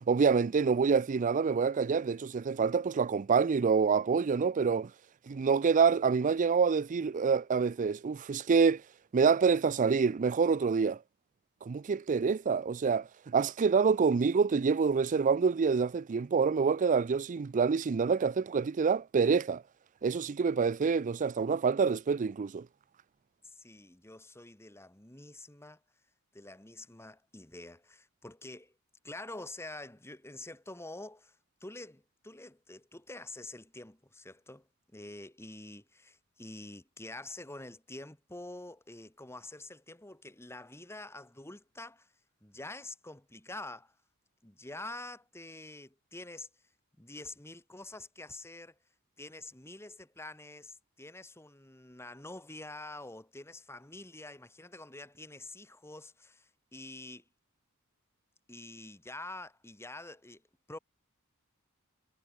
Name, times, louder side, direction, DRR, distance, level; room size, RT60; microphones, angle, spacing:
voice 1, 0.0-4.9 5.3-8.8 9.1-11.0 11.6-19.6 20.0-22.7, right 5 dB, 35° right, 0.4 m, -27 dB
voice 2, 23.4-25.8 26.3-28.7 29.0-42.1 42.4-43.9 44.4-46.5 47.0-48.8 49.2-57.2 58.5-60.4 60.7-60.8, left 2 dB, 10° left, 1.9 m, -47 dB
head